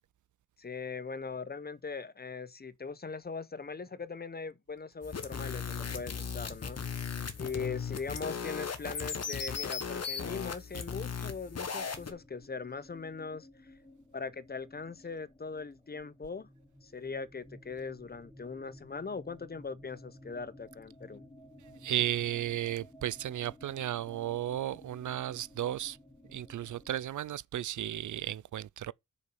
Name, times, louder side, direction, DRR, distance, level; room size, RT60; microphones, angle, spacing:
voice 1, 0.6-6.8 7.4-13.5 14.1-16.5 16.8-21.2, left 4 dB, 30° left, 0.7 m, -40 dB
sound 1, 5.0-12.1, left 6 dB, 55° left, 1.4 m, -37 dB
sound 2, 11.2-27.1, left 1 dB, 10° left, 2.3 m, -55 dB
voice 2, 21.6-26.0 26.3-28.9, right 12 dB, 75° right, 0.4 m, -34 dB
6.6 x 5.2 x 7.0 m
wide cardioid pair, 95°, 31 cm